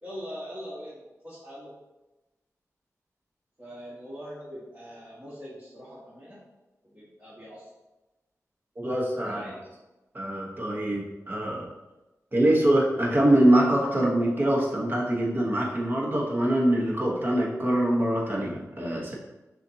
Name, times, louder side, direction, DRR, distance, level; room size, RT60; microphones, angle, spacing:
voice 1, 0.0-1.7 3.6-6.5 6.8-7.7 9.2-9.6, equal, 20° right, -11 dB, 1.4 m, -42 dB
voice 2, 8.8-9.4 10.1-11.7 12.3-19.1, right 1 dB, 35° right, -3 dB, 1.1 m, -24 dB
6.5 x 2.5 x 2.8 m, 1.0 s
wide cardioid pair, 85°, 6 cm